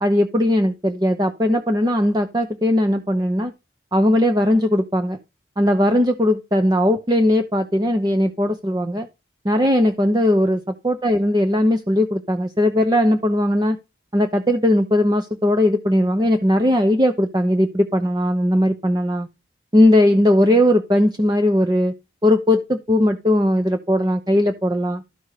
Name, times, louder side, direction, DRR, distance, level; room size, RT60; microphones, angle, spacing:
voice 1, 0.0-3.5 3.9-5.2 5.6-9.1 9.4-13.8 14.1-19.3 19.7-21.9 22.2-25.0, left 1 dB, 20° right, 7 dB, 0.7 m, -18 dB
13.0 x 5.3 x 4.9 m, 0.26 s
head